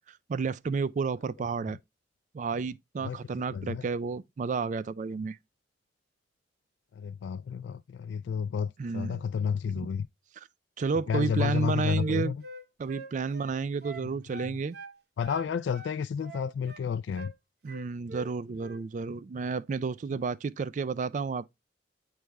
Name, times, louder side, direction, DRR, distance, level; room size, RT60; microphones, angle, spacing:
voice 1, 0.3-1.8 2.3-5.4 8.8-9.2 9.7-9.9 10.4-10.5 10.8-12.3 12.8-14.8 17.6-21.5, right 4 dB, 45° right, 0.3 m, -31 dB
voice 2, 3.5-3.8 7.0-10.1 11.1-12.4 15.2-17.3, left 7 dB, 85° left, 0.3 m, -31 dB
Wind instrument woodwind instrument, 11.5-15.0 15.2-16.9 17.1-17.4 17.7-18.3 18.6-18.8, right 2 dB, 60° right, 1.0 m, -44 dB
9.1 x 3.3 x 3.4 m
head